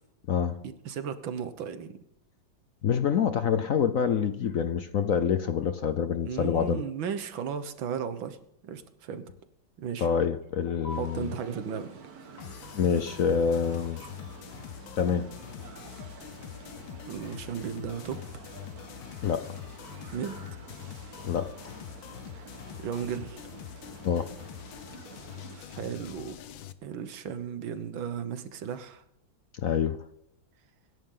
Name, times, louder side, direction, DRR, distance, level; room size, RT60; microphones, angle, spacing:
voice 1, 0.3-0.6 2.8-6.8 10.0-11.3 12.4-12.5 12.7-14.0 15.0-15.3 19.2-19.5 21.2-21.8 24.0-24.4 29.5-30.0, left 7 dB, 60° left, 11 dB, 0.9 m, -27 dB
voice 2, 0.9-2.0 6.2-8.4 8.6-9.3 9.8-10.1 11.0-11.9 17.1-18.2 20.1-20.4 22.8-23.5 25.5-26.4 26.8-29.0, right 7 dB, 85° right, 10 dB, 1.9 m, -35 dB
sound 1, 10.9-25.6, right 4 dB, 50° right, 1.8 m, -49 dB
sound 2, 12.4-26.7, left 11 dB, 80° left, 1.6 m, -44 dB
25.5 x 11.0 x 3.9 m, 0.78 s
omnidirectional pair, 2.1 m